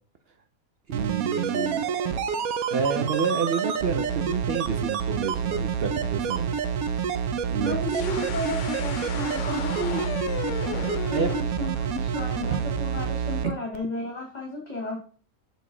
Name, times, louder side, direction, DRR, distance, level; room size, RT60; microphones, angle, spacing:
voice 1, 0.9-1.9 2.7-6.5 7.5-7.8 11.1-11.5 12.5-12.6 13.4-13.5, right 6 dB, 60° right, 7 dB, 0.7 m, -29 dB
sound 1, 0.9-13.5 13.7-13.8, right 7 dB, 85° right, 1.1 m, -28 dB
voice 2, 1.5-2.4 7.6-10.2 11.1-15.0, left 1 dB, 30° left, 0 dB, 1.4 m, -33 dB
sound 2, 7.8-11.4, left 9 dB, 70° left, 0.9 m, -35 dB
6.7 x 5.1 x 3.8 m, 0.41 s
omnidirectional pair, 1.5 m